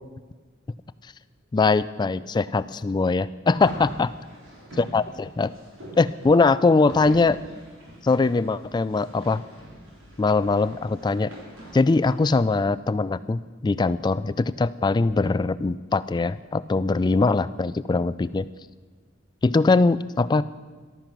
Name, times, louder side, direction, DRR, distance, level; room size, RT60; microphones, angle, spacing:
voice 1, 1.5-4.1 4.8-5.5 6.0-7.4 8.0-9.4 10.2-11.3 11.7-18.5 19.4-20.4, left 3 dB, 20° left, 16 dB, 0.3 m, -21 dB
sound 1, 3.5-12.6, right 1 dB, 90° right, 4.0 m, -43 dB
14.0 x 12.0 x 6.0 m, 1.5 s
head